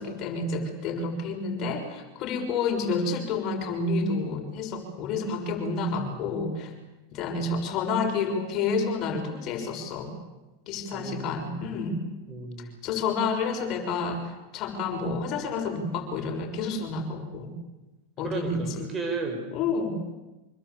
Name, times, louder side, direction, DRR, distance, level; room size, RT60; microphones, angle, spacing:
voice 1, 0.0-6.7 7.1-10.1 10.7-12.0 12.8-17.5 18.2-18.9 19.5-19.9, left 4 dB, 45° left, 3 dB, 6.3 m, -29 dB
voice 2, 6.0-6.3 10.9-11.7 12.3-12.8 18.2-19.4, right 3 dB, 25° right, 6 dB, 6.0 m, -34 dB
26.0 x 23.0 x 8.5 m, 1.0 s
hypercardioid pair, 110°, 0 cm